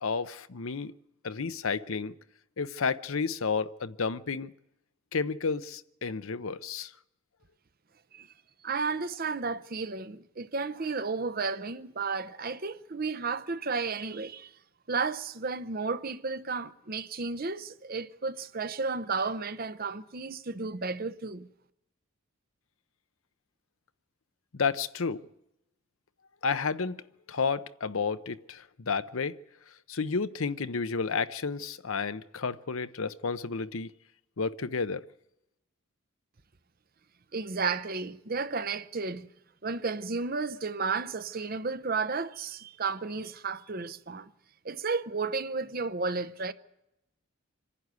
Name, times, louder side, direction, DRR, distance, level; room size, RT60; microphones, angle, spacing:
voice 1, 0.0-0.9 1.2-2.1 2.6-4.5 5.1-6.9 24.5-25.2 26.4-27.0 27.3-29.4 29.9-33.9 34.4-35.0, left 5 dB, 75° left, 0.7 m, -31 dB
voice 2, 8.6-14.5 14.9-21.5 37.3-39.3 39.6-44.3 44.6-46.5, right 4 dB, 45° right, 0.7 m, -33 dB
26.0 x 11.0 x 9.5 m
head